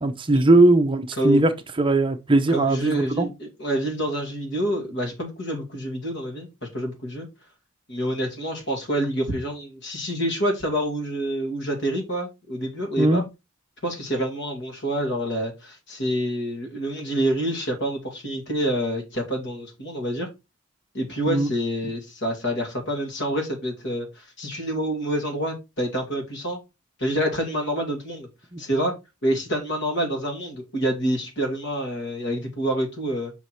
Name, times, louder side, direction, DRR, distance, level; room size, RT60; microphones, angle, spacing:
voice 1, 0.0-1.5 1.8-3.3 13.0-13.2 21.3-21.5 28.5-28.6, right 2 dB, 25° right, 0.6 m, -19 dB
voice 2, 2.5-7.3 7.9-13.2 13.8-20.3 20.9-26.6 27.0-28.3 28.6-28.9 29.2-33.3, right 1 dB, 60° left, 2.3 m, -27 dB
5.6 x 4.7 x 4.2 m
head